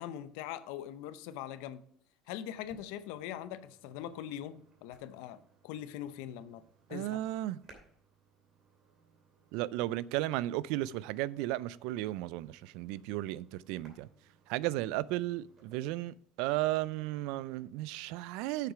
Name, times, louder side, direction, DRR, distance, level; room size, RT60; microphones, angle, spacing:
voice 1, 0.0-1.8 2.3-6.6 6.9-7.2, left 11 dB, 85° left, 0.7 m, -42 dB
sound 1, 2.5-15.8, right 4 dB, 40° right, 2.6 m, -65 dB
voice 2, 6.9-7.6 9.5-14.1 14.5-18.7, right 16 dB, 75° right, 0.3 m, -34 dB
8.0 x 6.6 x 4.8 m
cardioid pair, 140°, 0 cm